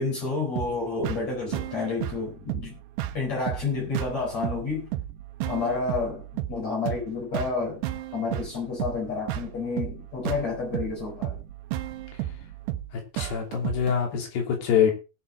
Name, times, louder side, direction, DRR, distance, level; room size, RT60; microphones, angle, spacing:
voice 1, 0.0-2.8 3.1-4.9 5.5-7.9 8.1-11.4, left 4 dB, 45° left, -2 dB, 5.5 m, -30 dB
sound 1, 0.6-14.0, right 13 dB, 85° right, 3.0 m, -34 dB
voice 2, 13.1-14.9, left 8 dB, 80° left, 2 dB, 5.0 m, -24 dB
19.0 x 7.3 x 4.0 m, 0.31 s
omnidirectional pair, 4.7 m